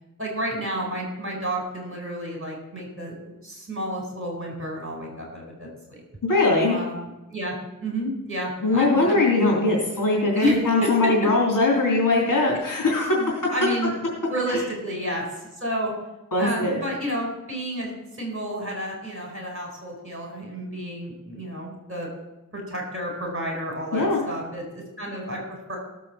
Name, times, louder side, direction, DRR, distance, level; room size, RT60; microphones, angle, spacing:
voice 1, 0.2-6.0 6.6-9.3 10.3-10.9 12.5-12.6 13.1-13.9 14.2-15.2 15.6-15.9 16.4-22.1 22.5-24.6 25.0-25.8, equal, 40° right, 1 dB, 4.8 m, -31 dB
voice 2, 6.2-6.8 8.6-13.4 14.5-14.6 16.3-16.8 23.9-24.2, left 2 dB, 75° left, -3 dB, 3.6 m, -21 dB
16.5 x 7.6 x 7.2 m, 0.98 s
wide cardioid pair, 105°, 33 cm